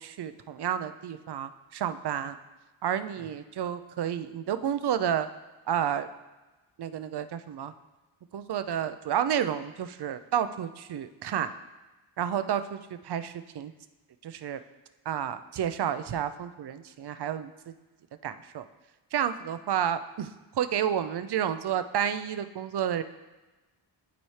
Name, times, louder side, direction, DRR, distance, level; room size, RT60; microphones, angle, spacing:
voice 1, 0.0-2.4 2.8-5.3 5.7-6.1 6.8-7.7 8.3-11.5 12.2-13.7 14.2-14.6 15.1-17.7 18.2-18.7 19.1-23.0, right 9 dB, 55° right, 11 dB, 0.6 m, -30 dB
12.0 x 4.2 x 3.2 m, 1.2 s
cardioid pair, 70°, 48 cm